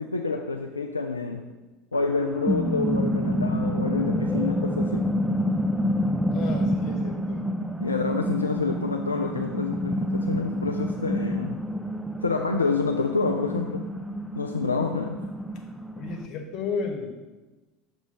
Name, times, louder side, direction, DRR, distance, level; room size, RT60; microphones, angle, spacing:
voice 1, 0.0-1.4 1.9-5.1 7.8-11.6 12.2-13.8 14.4-15.2, left 4 dB, 85° left, 2 dB, 0.3 m, -28 dB
sound 1, 2.0-16.2, equal, 5° right, 0.4 m, -28 dB
voice 2, 6.3-7.4 16.0-17.1, left 5 dB, 45° left, 2 dB, 1.1 m, -33 dB
6.7 x 3.0 x 5.3 m, 1.2 s
figure-of-eight pair, 70°, 0 cm